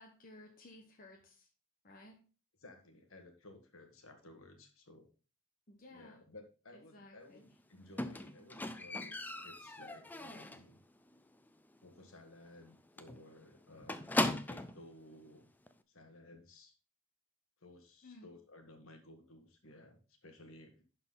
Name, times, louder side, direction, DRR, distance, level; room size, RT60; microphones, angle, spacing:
voice 1, 0.0-1.5 1.8-2.2 5.7-6.2 6.7-7.4 18.0-18.3, left 2 dB, 40° left, 1 dB, 1.0 m, -56 dB
voice 2, 2.6-5.1 5.9-10.8 11.8-14.0 14.3-15.5 15.9-16.7 17.6-20.8, left 1 dB, 65° left, 5 dB, 1.6 m, -57 dB
Squeak, 8.0-10.7 11.1-11.5 11.8-11.9 12.2-12.3 12.6-12.7 13.0-14.8 15.7-15.8, left 1 dB, 10° left, 0.4 m, -38 dB
11.0 x 4.4 x 3.9 m, 0.35 s
head